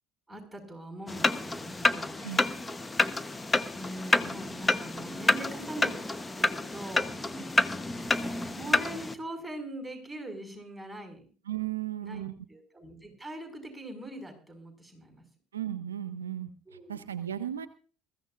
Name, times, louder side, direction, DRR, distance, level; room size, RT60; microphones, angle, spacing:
voice 1, 0.3-2.1 3.7-6.0 6.4-7.1 8.5-11.2 12.0-12.2 12.5-15.2 16.7-17.0, right 1 dB, 5° right, 4 dB, 5.4 m, -42 dB
sound 1, 1.1-9.1, left 2 dB, 15° left, 0.9 m, -29 dB
voice 2, 11.5-12.3 15.5-16.5 16.9-17.7, right 11 dB, 90° right, 12 dB, 0.5 m, -35 dB
21.5 x 14.5 x 2.5 m, 0.39 s
hypercardioid pair, 65°, 0 cm